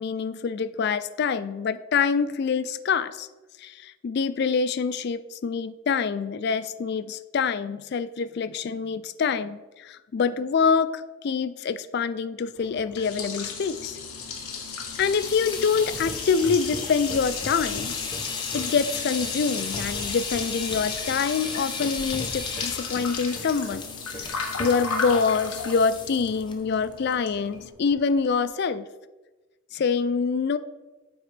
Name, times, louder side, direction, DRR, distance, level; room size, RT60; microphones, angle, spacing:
voice 1, 0.0-3.3 3.6-14.0 15.0-18.0 18.5-23.8 24.3-28.9 29.7-30.6, left 5 dB, 50° left, 14 dB, 0.3 m, -26 dB
Liquid, 12.6-27.7, left 5 dB, 85° left, 1.3 m, -35 dB
sound 1, 14.9-26.5 26.8-27.1 27.4-27.5 27.9-28.3, left 4 dB, 20° left, 0.7 m, -35 dB
9.3 x 7.9 x 3.3 m, 1.2 s
head